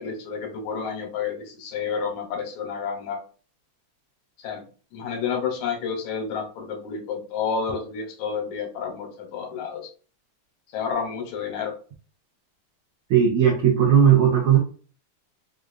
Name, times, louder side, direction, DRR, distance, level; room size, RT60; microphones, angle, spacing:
voice 1, 0.0-3.2 4.4-4.6 4.9-9.8 10.7-11.7, left 6 dB, 75° left, 3 dB, 2.0 m, -30 dB
voice 2, 13.1-14.6, right 8 dB, 85° right, -1 dB, 1.1 m, -17 dB
4.9 x 2.3 x 2.4 m, 0.39 s
omnidirectional pair, 3.4 m